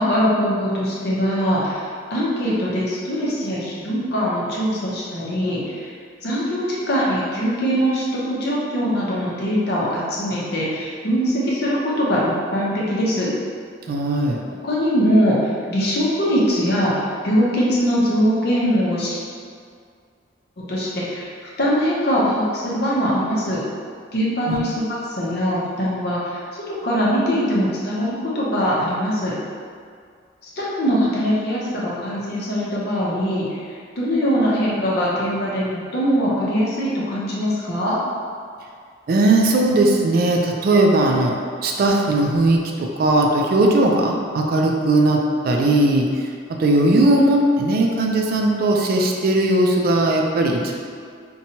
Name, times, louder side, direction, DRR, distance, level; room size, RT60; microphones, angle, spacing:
voice 1, 0.0-5.9 6.2-13.3 14.6-19.2 20.7-21.3 21.6-23.6 24.1-24.8 25.2-29.3 30.6-38.0, equal, 60° left, -6 dB, 0.6 m, -22 dB
voice 2, 13.9-14.4 24.5-24.6 39.1-50.7, right 2 dB, 55° right, 1 dB, 0.3 m, -18 dB
2.7 x 2.2 x 2.8 m, 2.1 s
head